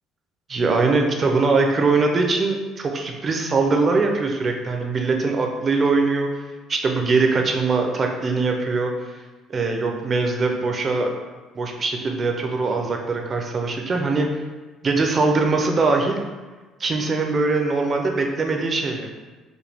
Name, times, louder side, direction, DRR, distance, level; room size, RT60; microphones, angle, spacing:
voice 1, 0.5-6.3 6.7-9.1 9.5-11.1 11.5-14.4 14.8-16.2 16.8-19.1, right 3 dB, 30° right, 3 dB, 0.5 m, -22 dB
4.9 x 2.2 x 3.4 m, 1.3 s
cardioid pair, 125°, 0 cm